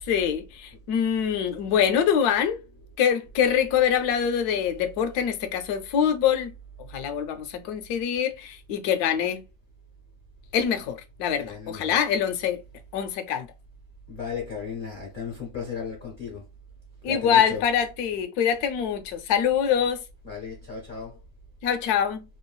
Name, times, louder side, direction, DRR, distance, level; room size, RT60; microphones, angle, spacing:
voice 1, 0.1-2.6 3.0-6.5 6.9-9.4 10.5-12.6 12.9-13.5 17.0-20.0 21.6-22.2, left 8 dB, 70° left, 1.0 m, -24 dB
voice 2, 11.4-12.0 14.1-16.4 17.1-17.6 20.2-21.2, left 6 dB, 50° left, 0.6 m, -35 dB
3.1 x 2.3 x 2.3 m
omnidirectional pair, 1.9 m